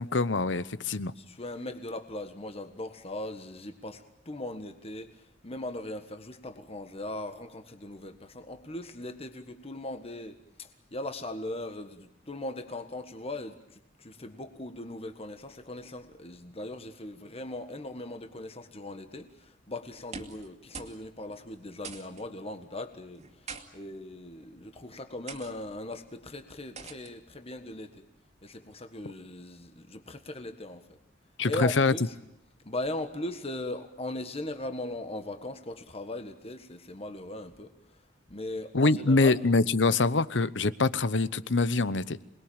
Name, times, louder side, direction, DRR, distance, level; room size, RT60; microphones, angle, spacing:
voice 1, 0.0-1.1 31.4-31.9 38.7-42.2, left 3 dB, 70° left, 16 dB, 0.9 m, -25 dB
voice 2, 1.1-28.0 28.4-30.9 31.4-32.1 32.6-38.0 38.3-39.4, left 1 dB, 35° left, 7 dB, 1.6 m, -39 dB
sound 1, 19.9-20.5 20.7-21.0 21.3-21.4 21.8-22.2 23.2-23.6 24.4-24.6 25.3-25.5 26.8-27.1, right 5 dB, 40° right, 2.4 m, -43 dB
27.5 x 21.0 x 8.8 m, 0.83 s
head